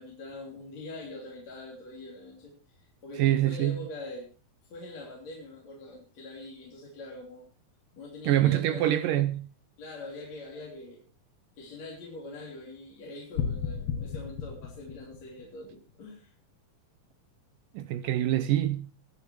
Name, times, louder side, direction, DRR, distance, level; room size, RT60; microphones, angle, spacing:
voice 1, 0.0-4.3 4.7-7.5 7.9-9.1 9.8-11.0 11.6-16.3, left 2 dB, 45° left, 4.5 m, -43 dB
voice 2, 3.2-3.8 8.3-9.4 17.8-19.0, right 13 dB, 75° right, 2.2 m, -25 dB
sound 1, 13.4-15.5, left 7 dB, 85° left, 3.7 m, -33 dB
20.5 x 8.2 x 4.7 m
omnidirectional pair, 4.3 m